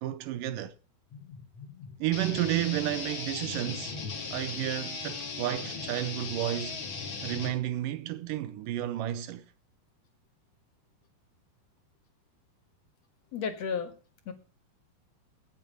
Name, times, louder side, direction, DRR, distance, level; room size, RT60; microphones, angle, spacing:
voice 1, 0.0-0.8 2.0-4.0 4.3-6.8 7.2-9.5, right 13 dB, 75° right, 2.3 m, -32 dB
voice 2, 1.1-2.0 13.3-13.9 14.3-14.4, left 6 dB, 55° left, 2.4 m, -36 dB
sound 1, 2.1-7.5, left 4 dB, 40° left, 2.6 m, -37 dB
17.5 x 7.3 x 5.3 m
omnidirectional pair, 4.1 m